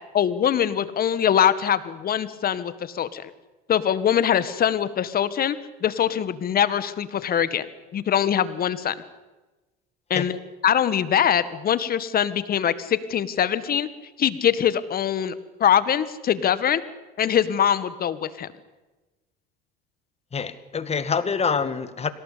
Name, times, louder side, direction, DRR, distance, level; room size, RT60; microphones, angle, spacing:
voice 1, 0.1-3.3 3.7-5.6 5.8-7.7 7.9-9.0 10.1-10.4 10.6-13.9 14.2-15.3 15.6-16.8 17.2-18.5, left 9 dB, 45° left, 14 dB, 1.8 m, -23 dB
voice 2, 20.3-22.1, left 5 dB, 30° left, 12 dB, 2.1 m, -26 dB
26.5 x 18.0 x 8.7 m, 1.2 s
supercardioid pair, 85°, 21 cm